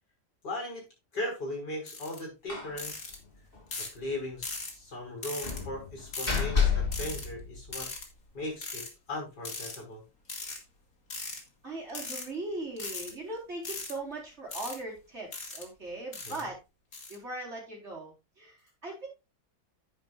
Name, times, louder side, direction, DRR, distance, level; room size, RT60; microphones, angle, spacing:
voice 1, 0.4-0.8 1.1-3.0 3.9-7.9 8.3-10.0 16.2-16.4, left 1 dB, 65° left, 0 dB, 6.4 m, -38 dB
sound 1, 1.9-2.2 2.8-3.2 3.7-4.0 4.4-4.7 5.2-5.6 6.1-6.4 6.9-7.3 7.7-8.1 8.6-8.9 9.4-9.8 10.3-10.6 11.1-11.4 11.9-12.3 12.8-13.1 13.6-13.9 14.5-14.8 15.3-15.7 16.1-16.4 16.9-17.2, left 3 dB, 50° left, 2.6 m, -38 dB
Slam, 2.5-2.8 3.1-3.2 3.5-3.6 5.4-8.0, left 6 dB, 30° left, 3.1 m, -30 dB
voice 2, 11.6-16.6 17.1-19.1, right 2 dB, 35° right, -1 dB, 4.7 m, -39 dB
10.5 x 9.9 x 2.5 m, 0.25 s
omnidirectional pair, 1.9 m